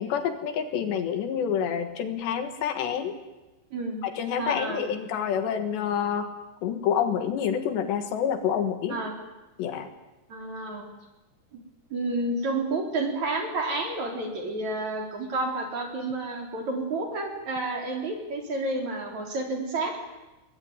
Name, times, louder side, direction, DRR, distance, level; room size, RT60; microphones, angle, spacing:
voice 1, 0.0-3.2 4.0-6.3 6.6-9.0 9.6-9.9, left 8 dB, 70° left, 8 dB, 3.6 m, -28 dB
voice 2, 3.7-4.0 4.4-4.8 8.9-9.1 10.3-10.9 11.5-11.6 11.9-20.0, right 2 dB, 40° right, 2 dB, 4.8 m, -30 dB
26.0 x 21.5 x 9.8 m, 1.1 s
omnidirectional pair, 5.3 m